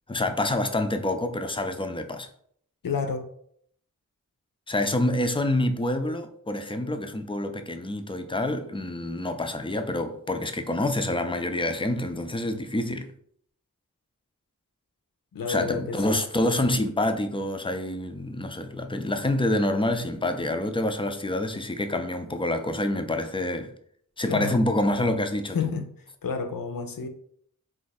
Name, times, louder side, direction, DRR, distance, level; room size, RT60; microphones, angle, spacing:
voice 1, 0.1-2.3 4.7-13.1 15.5-23.7 24.2-25.6, left 1 dB, 15° left, 0.4 m, -27 dB
voice 2, 2.8-3.3 15.3-16.2 24.2-24.6 25.5-25.9 26.2-27.1, left 5 dB, 75° left, 0.5 m, -30 dB
2.4 x 2.4 x 4.0 m
wide cardioid pair, 45°, 34 cm